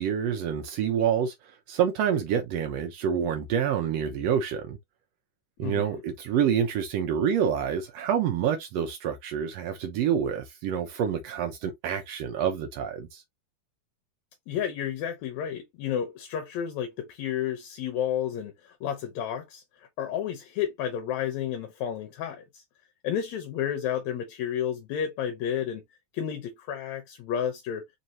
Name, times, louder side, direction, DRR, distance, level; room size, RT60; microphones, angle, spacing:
voice 1, 0.0-1.3 1.7-4.8 5.6-13.2, right 8 dB, 80° right, 1.5 m, -27 dB
voice 2, 5.6-6.0 14.5-22.6 23.0-25.8 26.1-27.8, left 9 dB, 75° left, 1.9 m, -31 dB
4.7 x 2.7 x 2.9 m
omnidirectional pair, 3.6 m